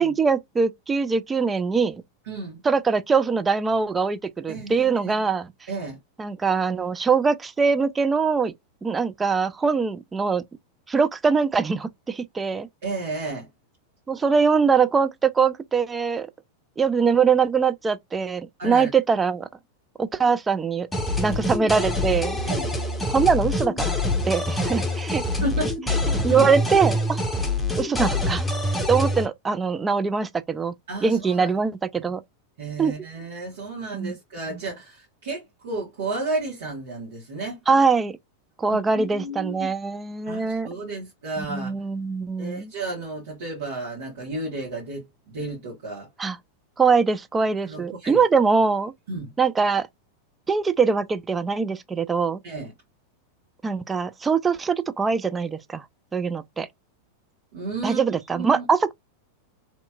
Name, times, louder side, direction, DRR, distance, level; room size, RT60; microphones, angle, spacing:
voice 1, 0.0-2.0 2.6-5.5 6.2-8.5 8.8-10.4 10.9-12.7 14.1-16.3 16.8-19.5 20.0-20.9 21.2-22.4 23.1-23.9 24.3-25.2 26.2-27.2 27.8-28.5 28.9-30.7 31.0-32.2 32.8-32.9 33.9-34.2 34.5-34.6 37.7-38.2 38.6-40.7 41.4-42.7 46.2-46.4 46.8-48.9 49.4-49.9 50.5-52.4 53.6-55.8 56.1-56.7 57.8-58.9, right 5 dB, 15° right, 0.4 m, -22 dB
voice 2, 2.3-2.6 4.5-5.2 5.7-6.0 12.8-13.5 18.6-18.9 21.2-21.4 22.4-22.7 25.4-25.8 26.3-26.5 30.9-31.5 32.0-32.1 32.6-37.6 38.7-39.7 40.3-41.7 42.4-46.1 47.6-48.2 49.1-49.3 52.4-52.7 57.5-58.1 58.3-58.6, right 3 dB, 60° right, 1.4 m, -32 dB
sound 1, 20.9-29.3, left 1 dB, 5° left, 0.8 m, -25 dB
3.2 x 2.9 x 2.3 m
figure-of-eight pair, 90°, 0 cm